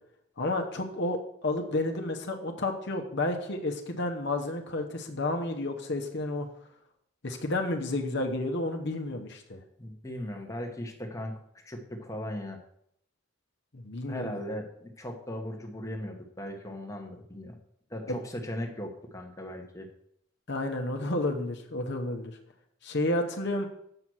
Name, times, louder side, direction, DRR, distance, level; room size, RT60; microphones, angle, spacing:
voice 1, 0.4-6.5 7.2-9.6 13.7-14.4 18.1-18.2 20.5-22.4 22.8-23.7, left 2 dB, 60° left, 3 dB, 1.0 m, -31 dB
voice 2, 9.8-12.6 14.1-17.6 17.9-19.9, left 1 dB, 15° left, 2 dB, 1.1 m, -38 dB
7.8 x 5.8 x 6.2 m, 0.74 s
head